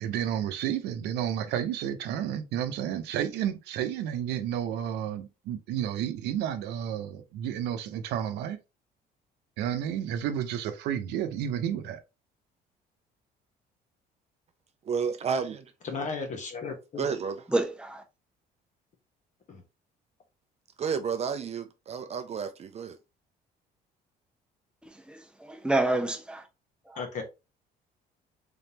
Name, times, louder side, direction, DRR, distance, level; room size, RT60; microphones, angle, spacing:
voice 1, 0.0-8.6 9.6-12.0, right 10 dB, 85° right, 0.7 m, -31 dB
voice 2, 14.9-15.6 17.0-17.4 20.8-23.0, right 6 dB, 40° right, 0.5 m, -31 dB
voice 3, 15.8-17.1 19.5-19.6 26.9-27.2, left 4 dB, 45° left, 1.3 m, -35 dB
voice 4, 17.5-18.0 25.1-26.4 26.9-27.0, right 2 dB, 5° right, 0.9 m, -28 dB
3.7 x 3.5 x 2.8 m
cardioid pair, 110°, 17 cm